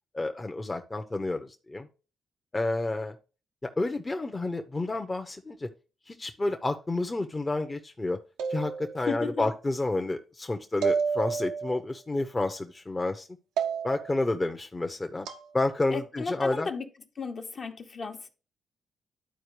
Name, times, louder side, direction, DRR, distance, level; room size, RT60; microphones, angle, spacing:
voice 1, 0.1-1.9 2.5-3.2 3.6-5.7 6.1-8.2 8.5-13.3 13.8-15.3 15.5-16.7, left 2 dB, 25° left, 0.8 m, -30 dB
sound 1, 8.4-9.2 10.8-11.8 13.6-14.2 15.3-15.5, right 6 dB, 85° right, 0.7 m, -30 dB
voice 2, 9.0-9.5 15.9-16.8 17.2-18.3, left 4 dB, 55° left, 1.1 m, -34 dB
11.5 x 4.4 x 3.2 m
hypercardioid pair, 45°, 0 cm